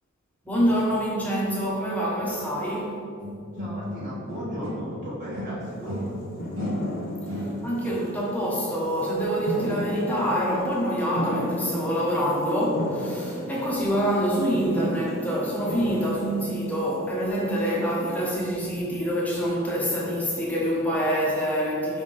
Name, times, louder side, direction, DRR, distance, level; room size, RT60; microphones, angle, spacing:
voice 1, 0.4-2.9 7.6-22.0, equal, 10° left, -6 dB, 1.1 m, -26 dB
sound 1, 3.2-5.0 5.3-7.9, left 1 dB, 75° right, 1.3 m, -34 dB
voice 2, 3.6-6.0, equal, 40° right, -10 dB, 1.4 m, -35 dB
sound 2, 5.6-18.5, equal, 50° left, 1.0 m, -35 dB
5.1 x 3.5 x 5.4 m, 2.4 s
head